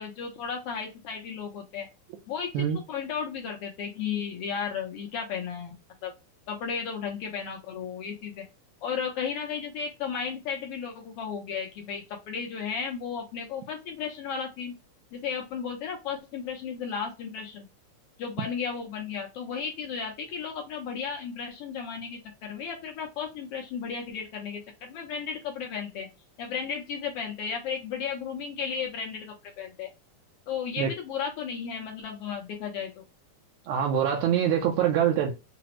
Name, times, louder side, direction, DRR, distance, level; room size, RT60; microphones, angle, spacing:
voice 1, 0.0-1.9 2.3-5.8 6.0-6.1 6.5-8.4 8.8-14.7 15.1-17.6 18.2-26.1 26.4-29.9 30.5-33.0, left 6 dB, 80° left, 1.3 m, -34 dB
voice 2, 33.7-35.3, right 9 dB, 80° right, 1.8 m, -24 dB
5.8 x 2.0 x 2.9 m
omnidirectional pair, 3.5 m